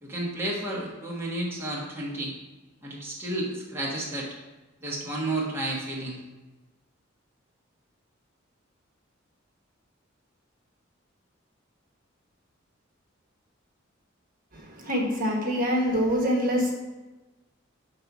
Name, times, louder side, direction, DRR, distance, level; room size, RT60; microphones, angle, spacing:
voice 1, 0.0-2.3 2.8-4.3 4.8-6.2, right 1 dB, 10° right, -5 dB, 1.2 m, -31 dB
voice 2, 14.5-16.7, equal, 45° right, -1 dB, 1.3 m, -25 dB
5.3 x 4.1 x 5.9 m, 1.1 s
head